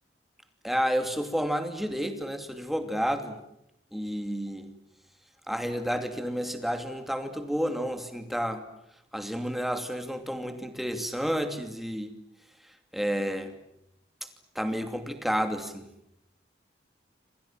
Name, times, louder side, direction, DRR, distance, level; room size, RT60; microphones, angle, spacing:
voice 1, 0.6-3.4 3.9-4.7 5.5-8.6 9.1-12.2 12.9-13.5 14.5-15.8, equal, ahead, 7 dB, 2.6 m, -30 dB
28.0 x 26.5 x 7.6 m, 0.80 s
head